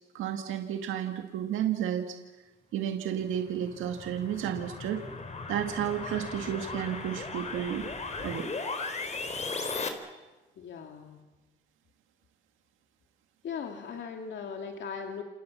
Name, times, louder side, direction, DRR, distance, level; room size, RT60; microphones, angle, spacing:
voice 1, 0.1-2.2 2.7-5.0 5.5-7.9 8.2-8.5, right 10 dB, 85° right, 5 dB, 2.0 m, -32 dB
sound 1, 3.4-9.9, left 3 dB, 35° left, 4.3 m, -37 dB
voice 2, 10.6-11.2 13.4-15.2, left 6 dB, 65° left, 3 dB, 2.5 m, -38 dB
28.5 x 28.0 x 7.4 m, 1.2 s
cardioid pair, 90°, 20 cm